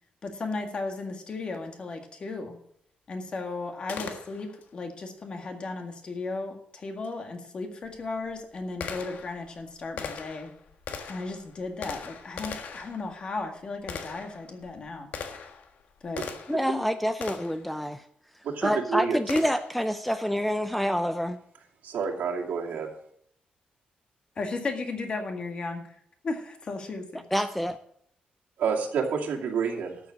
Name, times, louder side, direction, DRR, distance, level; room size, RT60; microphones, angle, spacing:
voice 1, 0.2-2.6 3.1-10.5 11.1-15.1 16.0-16.2 24.4-25.8 26.2-27.2, left 3 dB, 35° left, 4 dB, 1.9 m, -35 dB
Gunshot gunfire, 3.9-4.7 7.0-7.1 7.8-16.7 17.2-17.7 19.3-19.8, left 6 dB, 70° left, 1.5 m, -40 dB
voice 2, 16.5-18.0 18.6-21.4 27.3-27.8, equal, 5° left, 9 dB, 0.4 m, -27 dB
voice 3, 18.4-19.2 21.8-22.9 28.6-30.0, right 6 dB, 80° right, -1 dB, 2.6 m, -28 dB
13.0 x 7.2 x 6.3 m, 0.66 s
wide cardioid pair, 165°, 3 cm